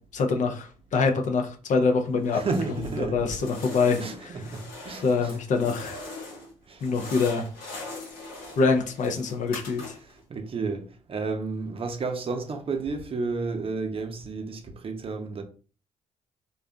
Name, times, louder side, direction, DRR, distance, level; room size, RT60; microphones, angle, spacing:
voice 1, 0.1-2.4 2.8-4.0 4.2-4.3 5.0-6.0 6.8-7.5 8.6-10.0, left 4 dB, 55° left, 0.5 m, -25 dB
sound 1, 2.2-3.0 3.3-6.5 6.8-10.2, left 2 dB, 80° left, 0.9 m, -41 dB
voice 2, 2.3-3.3 4.0-5.3 6.7-6.8 10.3-10.8 11.1-15.4, right 4 dB, 40° right, 0.6 m, -31 dB
2.5 x 2.3 x 2.2 m
hypercardioid pair, 50°, 15 cm